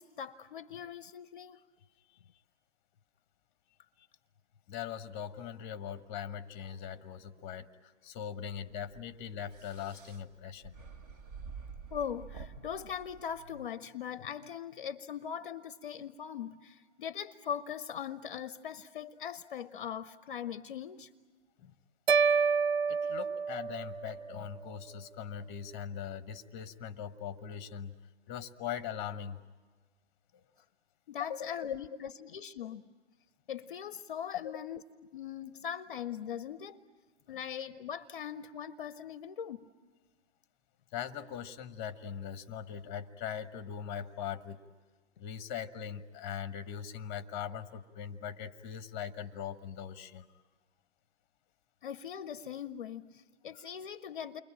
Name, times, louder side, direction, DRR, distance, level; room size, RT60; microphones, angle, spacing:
voice 1, 0.0-1.6 11.9-21.1 31.1-32.9 33.5-34.8 35.1-36.8 37.3-39.7 51.8-54.4, left 8 dB, 45° left, 0.7 m, -40 dB
voice 2, 4.7-10.8 21.6-21.7 22.9-28.0 28.3-29.4 30.3-30.4 31.2-31.5 32.0-32.1 34.4-34.6 37.3-37.4 40.9-44.6 45.2-50.3, left 8 dB, 20° left, 1.0 m, -41 dB
sound 1, 8.5-13.7, right 5 dB, 35° right, 1.9 m, -49 dB
sound 2, 22.1-24.4, right 5 dB, 60° right, 0.8 m, -28 dB
29.5 x 23.0 x 8.8 m
figure-of-eight pair, 130°, 35 cm